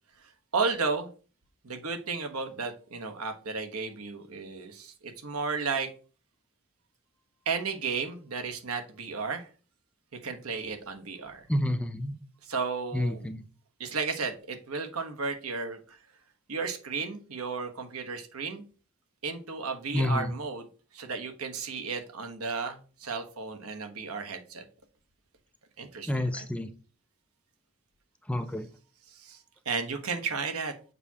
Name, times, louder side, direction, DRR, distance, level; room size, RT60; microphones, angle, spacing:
voice 1, 0.5-1.1 1.6-5.9 7.5-9.5 10.2-11.4 12.4-13.3 13.8-16.0 16.5-18.6 19.2-20.7 20.9-24.6 25.8-26.5 29.1-29.4 29.6-30.7, right 4 dB, 85° right, 5 dB, 1.2 m, -33 dB
voice 2, 11.5-12.2 12.9-13.4 19.9-20.3 26.1-26.7 28.3-28.7, left 1 dB, 5° left, 9 dB, 0.4 m, -29 dB
6.8 x 5.9 x 2.8 m, 0.37 s
head